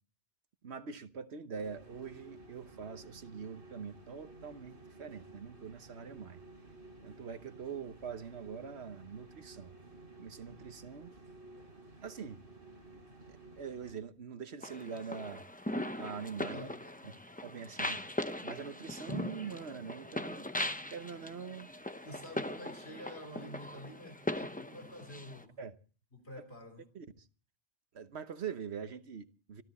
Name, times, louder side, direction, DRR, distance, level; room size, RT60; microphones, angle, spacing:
voice 1, 0.6-6.4 7.0-9.7 10.2-11.1 12.0-12.4 13.6-15.4 15.9-16.7 17.0-17.1 17.4-20.5 20.9-21.7 25.6-25.7 26.9-27.3 27.9-29.6, right 6 dB, 80° right, 1.3 m, -44 dB
sound 1, 1.6-13.9, right 2 dB, 55° right, 5.1 m, -54 dB
sound 2, 14.6-25.4, left 1 dB, 10° left, 0.8 m, -40 dB
voice 2, 16.5-17.2 22.0-25.5 26.1-26.9, left 1 dB, 70° left, 3.8 m, -49 dB
26.0 x 13.0 x 4.2 m
omnidirectional pair, 1.1 m